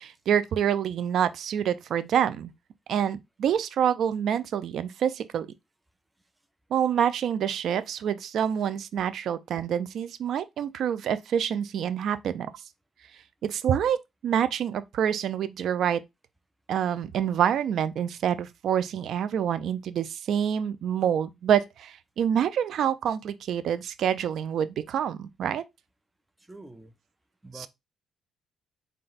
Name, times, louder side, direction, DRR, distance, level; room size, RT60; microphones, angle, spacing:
voice 1, 0.0-2.5 2.9-5.5 6.7-12.5 13.4-16.0 16.7-25.6 27.5-27.7, right 9 dB, 70° right, 0.3 m, -27 dB
voice 2, 26.5-26.9 27.4-27.7, right 2 dB, 10° right, 0.5 m, -45 dB
4.2 x 2.2 x 3.9 m
cardioid pair, 90°, 0 cm